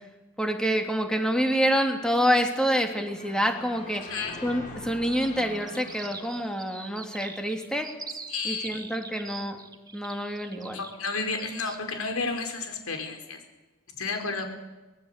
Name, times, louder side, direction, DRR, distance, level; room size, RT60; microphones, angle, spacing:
voice 1, 0.4-4.1 4.4-7.9 8.4-9.6 9.9-10.8, equal, 5° left, 4 dB, 3.0 m, -27 dB
sound 1, 2.7-7.7, left 2 dB, 35° left, 6.8 m, -45 dB
voice 2, 4.0-4.4 8.3-8.8 10.7-13.4 14.0-14.5, left 4 dB, 85° left, 5 dB, 5.1 m, -31 dB
sound 2, 5.0-11.8, right 4 dB, 20° right, 1.8 m, -42 dB
25.5 x 19.0 x 8.4 m, 1.2 s
head